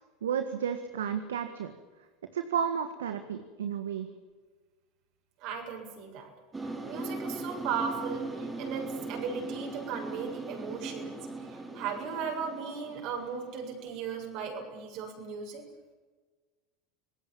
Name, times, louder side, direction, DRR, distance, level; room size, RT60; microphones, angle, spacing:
voice 1, 0.2-1.7 2.3-4.1, right 8 dB, 80° right, 8 dB, 1.7 m, -32 dB
voice 2, 5.4-6.3 6.6-15.6, right 6 dB, 55° right, 2 dB, 7.5 m, -37 dB
sound 1, 6.5-14.2, right 2 dB, 15° right, 5.2 m, -39 dB
25.5 x 20.0 x 7.4 m, 1.4 s
hypercardioid pair, 85°, 0 cm